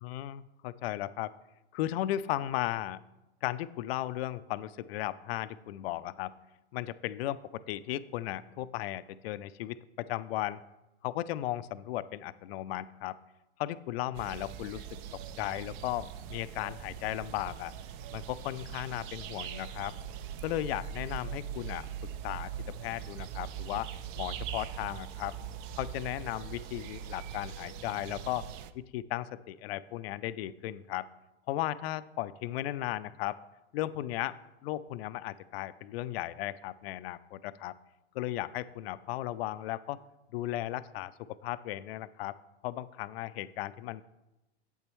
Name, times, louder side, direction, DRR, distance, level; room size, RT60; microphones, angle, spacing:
voice 1, 0.0-1.3 1.7-3.0 3.4-6.3 6.7-10.6 11.0-13.2 13.6-14.8 15.4-17.7 18.1-20.0 20.4-21.9 22.2-23.9 24.2-25.4 25.8-28.5 28.7-31.1 31.5-33.4 33.7-34.4 34.6-37.7 38.2-40.0 40.3-41.1 41.4-42.4 42.6-44.0, left 14 dB, 60° left, 15 dB, 0.4 m, -36 dB
sound 1, 14.1-28.7, right 9 dB, 35° right, 0.4 m, -41 dB
8.9 x 7.8 x 3.1 m, 0.99 s
hypercardioid pair, 115°, 34 cm